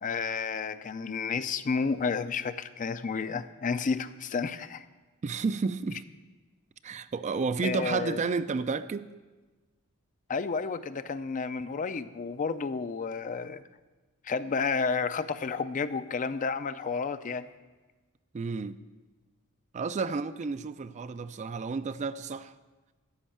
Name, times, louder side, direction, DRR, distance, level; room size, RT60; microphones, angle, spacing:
voice 1, 0.0-4.8 7.6-8.2 10.3-13.6 14.2-17.5, left 5 dB, 35° left, 0.4 m, -31 dB
voice 2, 5.2-6.0 6.8-9.1 18.3-18.8 19.7-22.5, right 4 dB, 35° right, 0.3 m, -31 dB
13.0 x 5.3 x 8.6 m
head